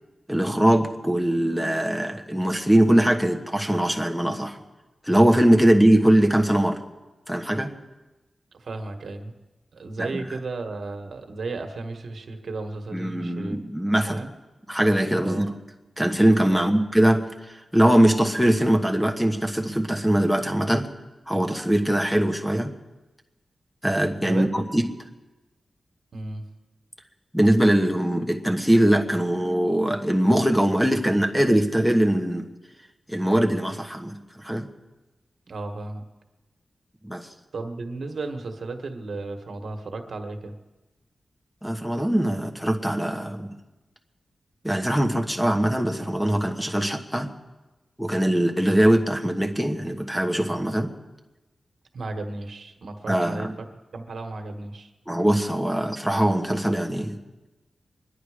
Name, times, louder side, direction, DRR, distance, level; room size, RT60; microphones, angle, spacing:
voice 1, 0.3-4.6 5.1-6.8 7.3-7.7 10.0-10.1 12.9-14.2 14.7-15.5 16.0-17.2 17.7-20.9 21.3-22.7 23.8-24.9 27.3-32.5 33.1-34.7 37.0-37.3 41.6-43.5 44.6-47.3 48.0-50.9 53.1-53.5 55.1-57.2, right 1 dB, ahead, 4 dB, 1.2 m, -21 dB
voice 2, 8.5-9.4 9.7-13.6 14.1-14.3 15.2-15.5 16.5-16.8 24.2-24.5 26.1-26.4 35.5-36.0 37.5-40.5 51.9-53.7 53.9-54.9, right 3 dB, 65° right, 5 dB, 1.5 m, -34 dB
24.5 x 11.0 x 5.0 m, 1.1 s
wide cardioid pair, 145°, 0 cm